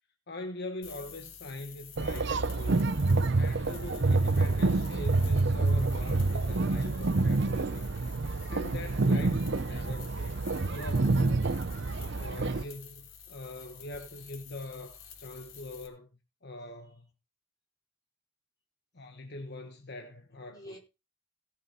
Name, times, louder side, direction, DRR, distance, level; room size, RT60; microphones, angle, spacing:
voice 1, 0.3-3.0 3.4-7.9 8.2-10.4 10.7-11.5 12.1-16.1 16.4-17.1 18.9-20.8, left 2 dB, 50° left, 1.2 m, -43 dB
sound 1, 0.8-15.9, left 7 dB, 70° left, 3.2 m, -50 dB
sound 2, 2.0-12.6, right 3 dB, 55° right, 0.7 m, -27 dB
voice 2, 11.7-12.2 12.5-12.7 20.4-20.8, equal, 20° left, 4.6 m, -51 dB
17.0 x 7.0 x 4.2 m
head